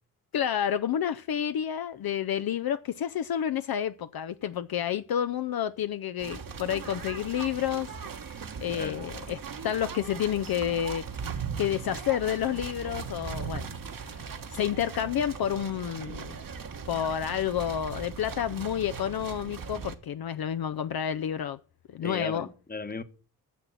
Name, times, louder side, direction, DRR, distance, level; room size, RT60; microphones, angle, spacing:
voice 1, 0.3-7.9 8.6-13.7 14.0-14.2 14.5-16.4 16.9-21.6 21.9-22.5, left 9 dB, 60° left, 0.6 m, -30 dB
sound 1, 6.2-19.9, right 6 dB, 55° right, 1.3 m, -39 dB
voice 2, 22.0-23.0, left 4 dB, 20° left, 1.1 m, -36 dB
10.5 x 6.8 x 7.2 m
cardioid pair, 55°, 40 cm